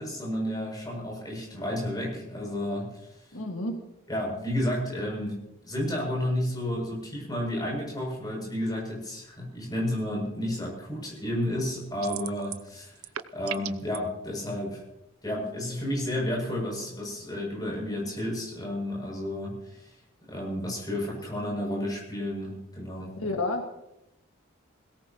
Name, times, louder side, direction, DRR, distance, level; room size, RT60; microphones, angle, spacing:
voice 1, 0.0-3.2 4.1-5.4 5.6-13.1 13.3-14.8 15.2-19.9 20.3-23.1, left 1 dB, 20° left, -2 dB, 7.4 m, -31 dB
voice 2, 3.3-3.8 23.2-23.8, left 2 dB, 80° left, 2 dB, 2.0 m, -30 dB
sound 1, 12.0-12.7 13.0-14.0, right 11 dB, 85° right, 0.6 m, -36 dB
21.5 x 18.0 x 3.1 m, 0.86 s
head